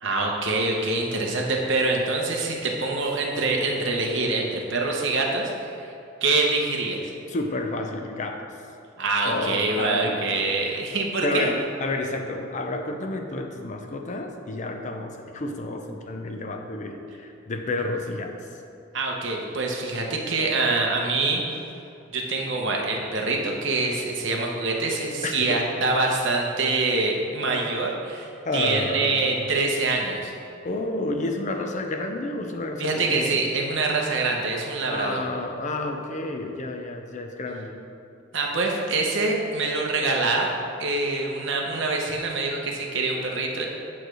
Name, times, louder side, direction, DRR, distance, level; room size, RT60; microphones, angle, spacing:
voice 1, 0.0-5.5 5.8-5.9 6.2-7.0 9.0-11.5 18.9-21.4 22.1-28.3 28.5-30.3 32.8-35.2 38.3-40.5 40.8-43.7, right 3 dB, 60° right, 0 dB, 1.0 m, -25 dB
voice 2, 7.3-8.5 9.2-10.2 10.7-10.8 11.2-18.4 25.2-25.6 28.4-29.5 30.6-33.4 34.9-37.8, left 2 dB, 35° left, 4 dB, 0.5 m, -30 dB
8.9 x 3.3 x 6.2 m, 2.7 s
head